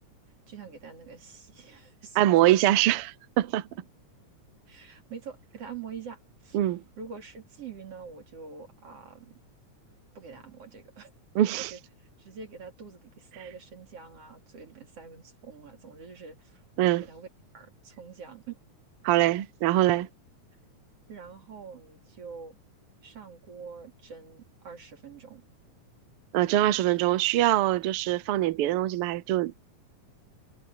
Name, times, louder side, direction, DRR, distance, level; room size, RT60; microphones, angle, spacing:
voice 1, 0.5-2.5 4.7-6.6 7.0-9.3 10.2-11.1 11.5-16.6 17.0-17.3 17.5-18.6 21.1-22.6 23.0-25.4, right 6 dB, 50° right, 4.0 m, -45 dB
voice 2, 2.2-3.7 6.5-6.8 11.3-11.7 16.8-17.0 19.0-20.1 26.3-29.6, right 14 dB, 80° right, 1.3 m, -23 dB
omnidirectional pair, 3.4 m